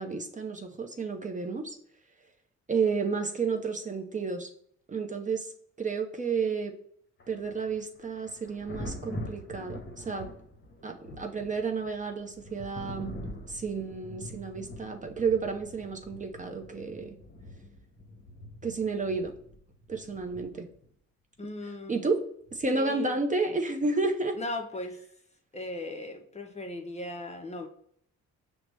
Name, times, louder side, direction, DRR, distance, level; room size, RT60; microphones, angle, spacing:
voice 1, 0.0-1.8 2.7-4.5 4.9-5.5 5.8-6.7 7.3-10.3 10.8-13.2 13.5-17.2 18.6-19.3 19.9-20.7 21.9-22.2 22.5-24.4, right 4 dB, 25° right, 0.5 m, -31 dB
Thunder, 7.2-20.9 22.5-22.7, left 1 dB, 40° left, 0.9 m, -44 dB
voice 2, 21.4-22.0 22.7-23.2 24.3-25.0 25.5-27.7, left 1 dB, 20° left, 0.5 m, -37 dB
5.7 x 2.0 x 3.3 m
cardioid pair, 90°, 30 cm